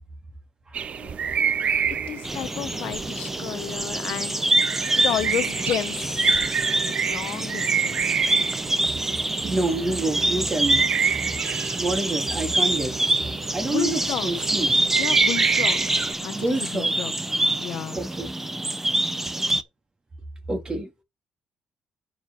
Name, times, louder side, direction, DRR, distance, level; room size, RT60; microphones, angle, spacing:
sound 1, 0.7-16.1, right 7 dB, 55° right, 0.7 m, -29 dB
voice 1, 2.1-4.4 5.0-6.6 6.8-8.2 13.6-14.3 15.0-16.0 16.2-17.1 17.6-18.0, left 12 dB, 80° left, 1.2 m, -32 dB
sound 2, 2.2-19.6, right 1 dB, 10° right, 1.1 m, -26 dB
voice 2, 9.5-10.9 11.8-13.0 13.5-14.8 16.3-16.9 17.9-18.3 20.5-20.9, right 2 dB, 30° right, 3.4 m, -27 dB
8.6 x 4.9 x 5.9 m
cardioid pair, 80°, 3 cm